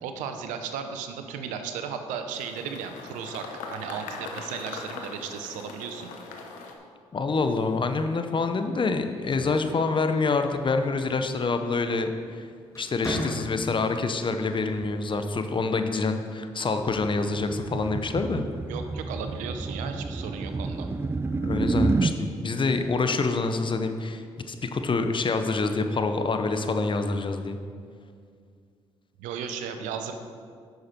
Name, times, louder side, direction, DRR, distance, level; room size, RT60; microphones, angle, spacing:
voice 1, 0.0-6.1 18.7-20.9 29.2-30.1, right 7 dB, 85° right, 7 dB, 0.7 m, -35 dB
sound 1, 2.3-6.7, left 4 dB, 80° left, 0.9 m, -40 dB
voice 2, 7.1-12.5 12.8-18.4 21.3-27.6, left 3 dB, 40° left, 7 dB, 0.8 m, -26 dB
sound 2, 9.0-10.6 12.0-12.3 12.7-13.9, equal, 25° left, 2.1 m, -36 dB
sound 3, 16.9-22.2, right 3 dB, 20° right, 0.4 m, -29 dB
9.5 x 6.4 x 4.4 m, 2.2 s
supercardioid pair, 50°, 13 cm